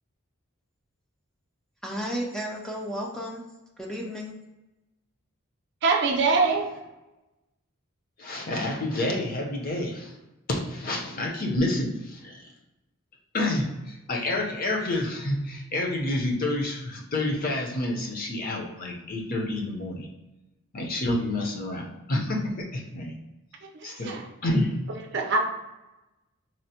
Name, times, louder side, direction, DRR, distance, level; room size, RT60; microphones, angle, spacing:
voice 1, 1.8-3.4 3.8-4.3, equal, 5° left, -2 dB, 0.3 m, -33 dB
voice 2, 5.8-6.7 23.8-24.2 25.1-25.4, right 4 dB, 55° right, 2 dB, 0.5 m, -23 dB
voice 3, 8.2-10.2 10.5-12.5 13.3-20.1 20.7-23.1 23.8-24.8, left 1 dB, 45° left, 0 dB, 0.6 m, -29 dB
4.1 x 2.0 x 2.8 m, 0.99 s
head